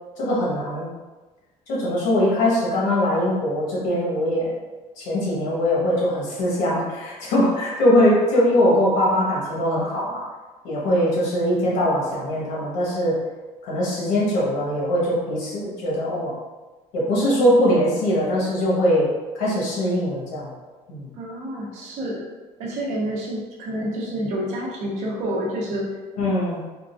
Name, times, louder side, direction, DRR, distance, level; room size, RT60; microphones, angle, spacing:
voice 1, 0.2-0.9 1.7-4.5 5.0-10.2 10.6-13.2 13.6-16.3 16.9-19.1 19.3-20.5 20.9-21.1 26.2-26.6, equal, 70° left, -5 dB, 1.2 m, -21 dB
voice 2, 21.1-22.3 22.6-26.0, equal, 60° right, -3 dB, 0.8 m, -28 dB
3.7 x 2.4 x 2.5 m, 1.2 s
cardioid pair, 160°, 13 cm